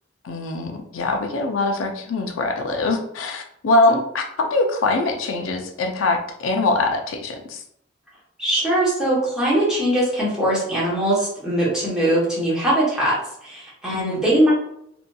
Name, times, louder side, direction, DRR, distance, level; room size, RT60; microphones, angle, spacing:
voice 1, 0.2-7.6 13.9-14.2, left 2 dB, 90° left, 3 dB, 0.4 m, -23 dB
voice 2, 8.4-14.5, right 1 dB, 5° right, -7 dB, 0.9 m, -21 dB
2.7 x 2.5 x 2.2 m, 0.72 s
head